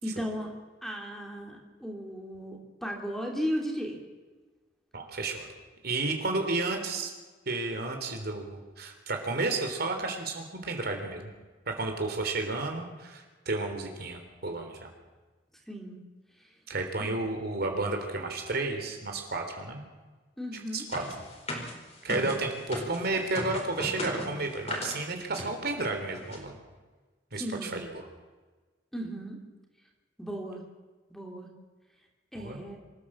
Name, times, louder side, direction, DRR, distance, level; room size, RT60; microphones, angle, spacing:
voice 1, 0.0-0.5 0.8-4.0 15.7-16.0 16.4-16.5 17.0-17.2 20.4-20.8 27.3-27.8 28.9-29.4 30.2-30.6 31.1-31.5 32.3-32.8, equal, ahead, 1 dB, 3.1 m, -35 dB
voice 2, 4.9-5.5 5.8-7.1 7.4-11.3 11.7-14.9 16.7-19.8 20.7-21.1 22.0-26.6 27.3-27.9 32.4-32.6, right 3 dB, 60° right, 4 dB, 3.4 m, -32 dB
sound 1, 20.9-23.0 23.3-25.0 25.3-25.5 25.8-25.9 26.1-26.4, left 1 dB, 35° left, 4.3 m, -36 dB
26.0 x 14.5 x 7.4 m, 1.3 s
head